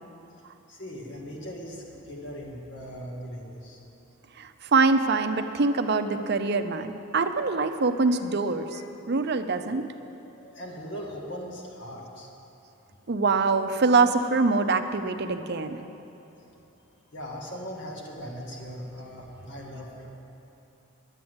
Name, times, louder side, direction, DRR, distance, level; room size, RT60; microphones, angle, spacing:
voice 1, 0.7-3.8 8.7-8.8 10.2-12.3 17.1-20.1, equal, 60° left, -1 dB, 1.8 m, -39 dB
voice 2, 4.4-8.8 9.1-9.9 13.1-15.8, right 4 dB, 50° right, 7 dB, 0.6 m, -24 dB
11.5 x 8.6 x 7.9 m, 2.9 s
head